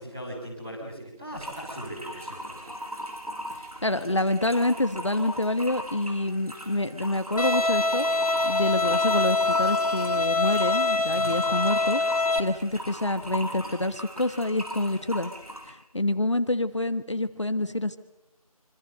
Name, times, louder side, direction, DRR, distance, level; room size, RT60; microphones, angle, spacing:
voice 1, 0.0-2.7 11.1-11.4, equal, 5° right, -8 dB, 2.1 m, -39 dB
sound 1, 1.3-15.7, equal, 75° right, 7.1 m, -39 dB
voice 2, 3.8-8.1 8.4-12.0 12.4-15.3 15.7-18.0, left 1 dB, 50° left, 10 dB, 1.4 m, -27 dB
Bowed string instrument, 7.4-12.4, left 3 dB, 75° left, 2.4 m, -24 dB
26.0 x 25.5 x 6.6 m, 0.88 s
figure-of-eight pair, 175°, 19 cm